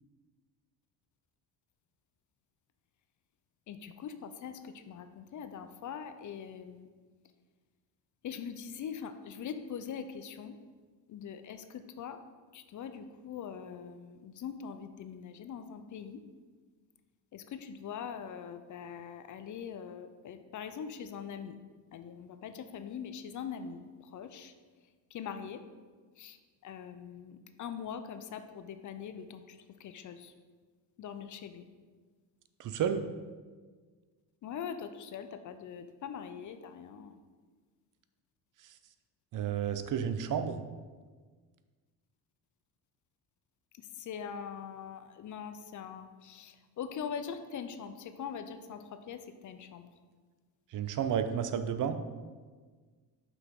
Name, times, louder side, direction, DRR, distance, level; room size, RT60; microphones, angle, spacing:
voice 1, 3.7-6.9 8.2-10.6 11.1-12.2 12.5-16.2 17.3-21.6 21.9-24.5 25.1-25.6 26.2-30.3 31.0-31.6 34.4-37.2 43.7-49.9, left 7 dB, 45° left, 9 dB, 0.5 m, -42 dB
voice 2, 32.6-33.0 39.3-40.6 50.7-52.0, right 8 dB, 50° right, 9 dB, 0.6 m, -31 dB
6.0 x 5.7 x 3.6 m, 1.5 s
cardioid pair, 105°, 41 cm